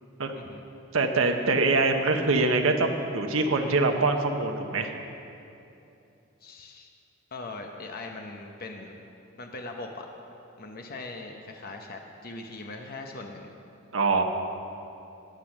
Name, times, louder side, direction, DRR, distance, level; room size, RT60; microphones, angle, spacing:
voice 1, 0.3-0.7 6.4-6.9 7.3-9.0 9.4-10.1 10.6-13.6, left 2 dB, 45° left, 3 dB, 0.9 m, -40 dB
voice 2, 0.9-4.9 13.9-14.2, right 3 dB, 70° right, 4 dB, 1.0 m, -24 dB
14.5 x 9.9 x 6.1 m, 2.8 s
head